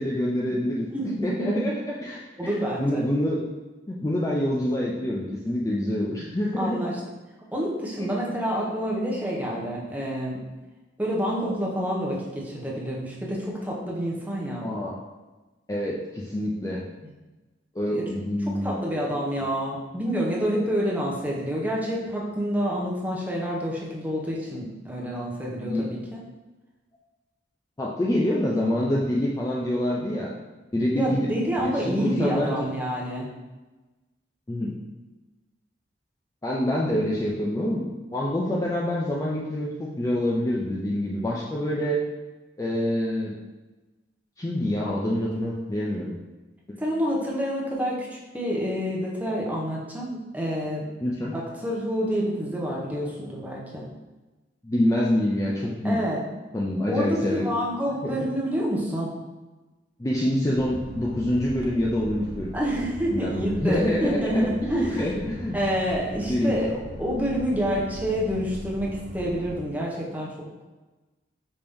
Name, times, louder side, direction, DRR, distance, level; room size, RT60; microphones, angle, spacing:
voice 1, 0.0-1.7 2.0-3.4 3.9-6.8 8.0-8.1 14.6-15.0 15.7-16.8 17.8-18.7 25.7-25.9 27.8-30.3 30.7-31.3 31.6-32.7 34.5-34.7 36.4-37.9 38.1-42.0 42.6-43.3 44.4-46.2 46.7-46.8 51.0-51.3 54.6-56.0 56.5-57.4 58.0-58.2 60.0-62.5 63.1-65.6 66.3-66.5, left 1 dB, 20° left, -4 dB, 0.4 m, -26 dB
voice 2, 0.5-1.7 2.4-3.0 6.6-7.0 7.5-10.4 11.0-14.7 17.9-18.0 18.4-26.2 30.9-33.3 46.8-50.8 51.3-53.8 55.8-56.2 56.9-59.2 62.5-65.1 65.5-70.5, equal, 10° right, -4 dB, 0.8 m, -28 dB
sound 1, 60.5-69.6, equal, 65° right, 0.8 m, -39 dB
5.2 x 2.9 x 3.5 m, 1.2 s
head